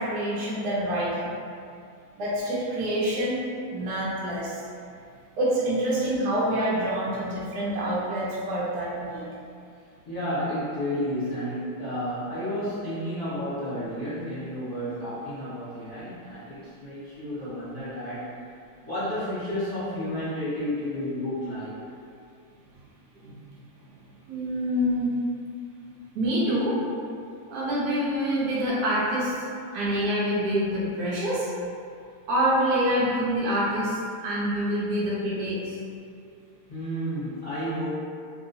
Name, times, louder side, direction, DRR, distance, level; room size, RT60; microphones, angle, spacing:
voice 1, 0.0-1.3 2.2-3.4 3.7-4.6 5.4-9.2 23.2-23.3 24.3-25.1 26.1-26.8 27.5-29.3 29.7-31.5 32.3-35.8, equal, 75° right, -7 dB, 0.9 m, -26 dB
voice 2, 10.0-18.3 18.8-21.7 36.7-37.9, equal, 25° left, -15 dB, 0.9 m, -31 dB
3.0 x 2.8 x 2.7 m, 2.4 s
omnidirectional pair, 2.4 m